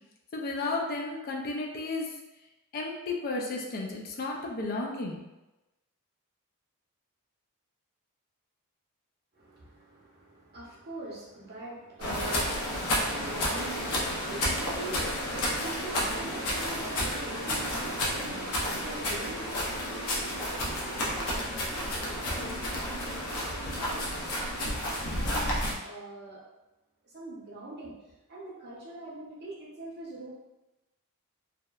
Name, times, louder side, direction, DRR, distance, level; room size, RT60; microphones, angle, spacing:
voice 1, 0.3-2.1 2.7-5.2, left 2 dB, 40° left, 0 dB, 0.3 m, -33 dB
voice 2, 9.3-22.5 22.9-24.8 25.1-26.4 27.0-30.4, right 2 dB, 45° right, -4 dB, 0.7 m, -44 dB
sound 1, 12.0-25.7, equal, 80° left, 0.6 m, -31 dB
2.8 x 2.1 x 2.3 m, 0.99 s
head